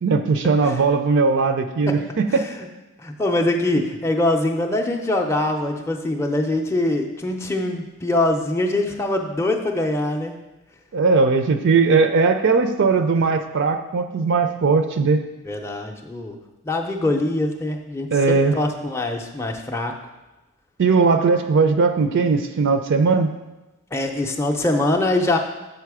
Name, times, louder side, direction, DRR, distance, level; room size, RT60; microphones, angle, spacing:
voice 1, 0.0-2.5 10.9-15.3 18.1-18.6 20.8-23.3, right 4 dB, 55° right, 8 dB, 0.4 m, -19 dB
voice 2, 2.3-2.7 3.0-10.4 15.5-16.4 16.6-19.9 23.9-25.4, left 2 dB, 10° left, 2 dB, 0.5 m, -23 dB
6.7 x 5.6 x 4.8 m, 1.0 s
head